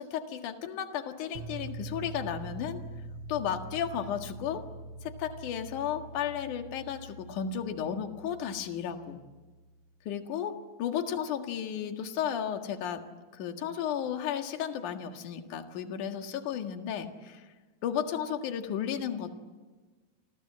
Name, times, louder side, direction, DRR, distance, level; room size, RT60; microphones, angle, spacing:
voice 1, 0.0-2.8 3.3-4.6 5.0-9.2 10.1-13.0 13.3-17.4 17.8-19.4, left 9 dB, 55° left, 6 dB, 2.9 m, -34 dB
sound 1, 1.3-9.5, right 2 dB, 85° right, 1.4 m, -44 dB
28.0 x 27.5 x 7.6 m, 1.3 s
omnidirectional pair, 4.7 m